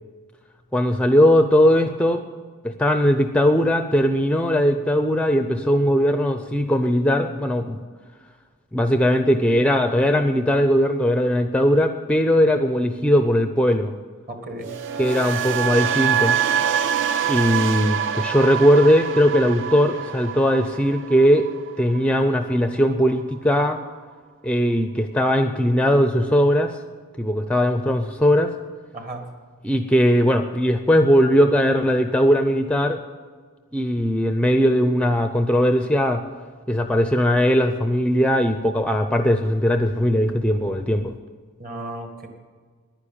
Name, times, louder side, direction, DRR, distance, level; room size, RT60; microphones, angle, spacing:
voice 1, 0.7-2.2 2.6-7.8 8.7-13.9 15.0-16.4 17.3-21.5 21.8-23.8 24.4-26.7 27.2-28.5 29.6-33.0 33.7-36.2 36.7-41.1, equal, 5° left, 7 dB, 0.4 m, -19 dB
voice 2, 14.3-14.7 28.9-29.2 41.6-42.3, right 1 dB, 40° right, 4 dB, 1.9 m, -34 dB
sound 1, 14.6-22.7 23.0-23.4, right 8 dB, 60° right, 0.5 m, -25 dB
10.5 x 9.8 x 8.7 m, 1.5 s
head